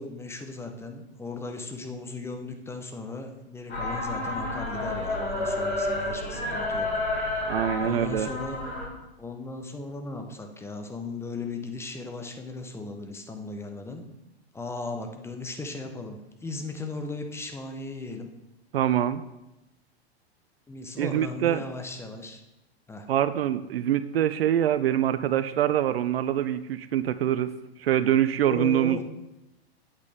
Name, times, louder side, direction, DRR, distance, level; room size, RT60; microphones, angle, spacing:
voice 1, 0.0-6.9 7.8-8.6 9.2-14.0 14.5-18.3 20.7-22.4 22.9-23.1 28.4-29.0, left 3 dB, 10° left, 4 dB, 0.8 m, -37 dB
sound 1, 3.7-8.9, left 2 dB, 85° left, 3.2 m, -30 dB
voice 2, 7.5-8.3 18.7-19.2 21.0-21.6 23.1-27.5 27.8-29.0, right 11 dB, 65° right, 14 dB, 0.5 m, -24 dB
8.3 x 8.3 x 3.5 m, 0.91 s
figure-of-eight pair, 105°, 32 cm